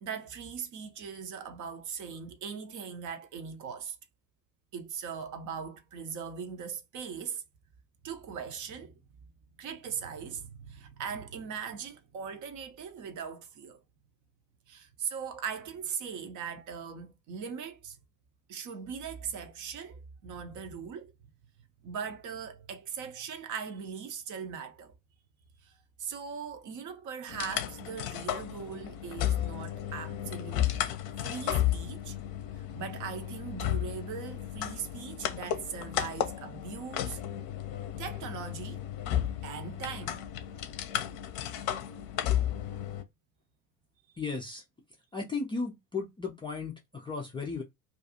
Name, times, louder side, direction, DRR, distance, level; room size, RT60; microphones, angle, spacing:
voice 1, 0.0-4.0 4.7-7.4 8.0-9.0 9.6-13.8 14.7-18.0 18.5-21.1 21.8-24.9 25.6-30.7 31.2-32.2 32.5-37.2 38.0-38.8 39.4-40.5, right 7 dB, 40° right, 0.6 m, -40 dB
sound 1, 27.3-43.0, left 11 dB, 45° left, 0.7 m, -33 dB
voice 2, 44.2-44.6 45.1-47.6, left 4 dB, 10° left, 0.4 m, -35 dB
2.5 x 2.3 x 2.7 m
figure-of-eight pair, 65°, 50 cm